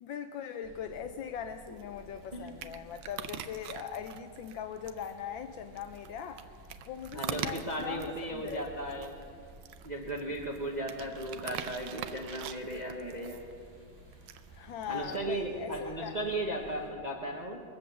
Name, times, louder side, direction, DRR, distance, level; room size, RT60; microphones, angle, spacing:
voice 1, 0.0-6.4 6.9-8.7 14.5-16.1, left 8 dB, 75° left, 8 dB, 1.3 m, -40 dB
sound 1, 0.6-16.9, right 1 dB, 10° right, 4.0 m, -55 dB
sound 2, 1.5-15.3, right 9 dB, 85° right, 1.4 m, -45 dB
voice 2, 7.1-9.1 9.8-13.4 14.9-17.6, right 1 dB, 30° right, 0 dB, 0.9 m, -36 dB
22.0 x 8.0 x 7.0 m, 2.3 s
omnidirectional pair, 2.2 m